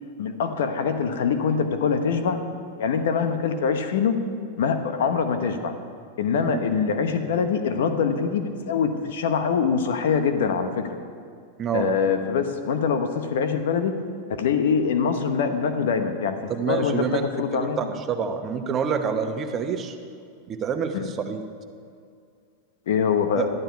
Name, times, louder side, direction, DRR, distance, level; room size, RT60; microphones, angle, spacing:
voice 1, 0.2-2.4 2.8-4.2 4.6-5.7 6.2-10.8 11.7-13.9 14.4-16.4 16.7-17.1 17.4-17.9 20.9-21.1 22.9-23.5, left 6 dB, 75° left, 7 dB, 1.1 m, -24 dB
voice 2, 11.6-11.9 16.5-17.2 17.6-20.0 20.5-21.4 23.4-23.5, right 6 dB, 30° right, 6 dB, 1.0 m, -27 dB
12.5 x 11.0 x 4.7 m, 2.3 s
hypercardioid pair, 110°, 0 cm